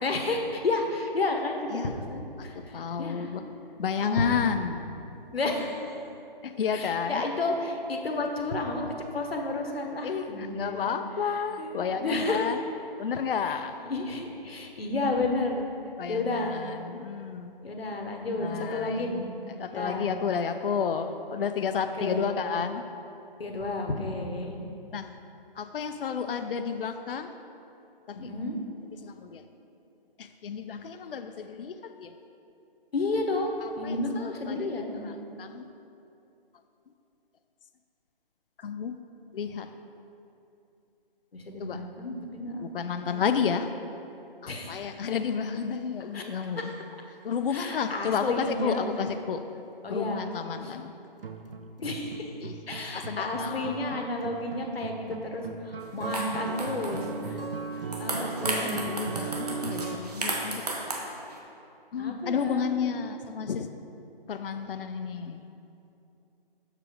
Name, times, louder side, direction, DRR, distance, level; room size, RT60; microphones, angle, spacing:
voice 1, 0.0-3.3 4.0-4.5 5.3-5.9 6.7-8.8 9.1-10.9 11.3-12.4 13.8-15.7 16.1-16.6 17.6-19.2 19.7-20.2 22.0-22.3 23.4-24.5 28.1-28.6 32.9-35.1 41.3-42.7 43.1-43.4 44.5-45.0 46.1-46.2 46.5-46.8 47.5-48.8 49.8-50.3 50.6-50.7 51.8-57.4 58.0-59.1 62.0-62.7, left 2 dB, 85° left, 2 dB, 1.1 m, -31 dB
voice 2, 2.4-3.4 3.8-4.9 6.4-7.2 10.0-12.6 13.0-13.7 16.0-17.5 18.4-19.2 19.6-22.9 24.9-25.1 25.6-27.3 29.0-29.4 30.2-32.1 33.6-34.7 35.0-35.7 38.6-38.9 39.3-39.7 41.6-41.8 42.6-43.7 44.4-46.7 47.2-49.4 49.9-50.9 52.4-52.6 52.9-54.0 57.2-57.5 58.4-60.6 61.9-63.7 64.3-65.4, left 6 dB, 65° left, 8 dB, 0.5 m, -31 dB
sound 1, 51.2-60.0, right 4 dB, 70° right, 0.6 m, -37 dB
sound 2, 55.8-55.9 56.1-57.3 57.7-61.4, right 2 dB, 40° right, 0.9 m, -34 dB
6.6 x 5.0 x 5.0 m, 2.8 s
hypercardioid pair, 165°, 29 cm